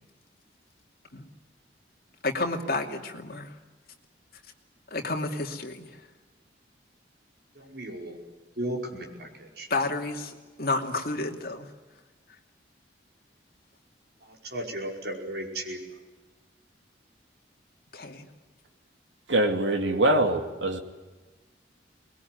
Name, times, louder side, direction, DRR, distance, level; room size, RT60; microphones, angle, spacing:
voice 1, 2.2-3.5 4.9-5.9 9.7-11.7 17.9-18.3, left 2 dB, 55° left, 3 dB, 2.7 m, -30 dB
voice 2, 7.7-8.2 8.6-9.3 9.6-9.7 14.5-15.8, right 1 dB, 60° right, 1 dB, 5.2 m, -34 dB
voice 3, 19.3-20.8, right 1 dB, 85° right, 5 dB, 2.4 m, -23 dB
23.5 x 21.0 x 9.5 m, 1.2 s
head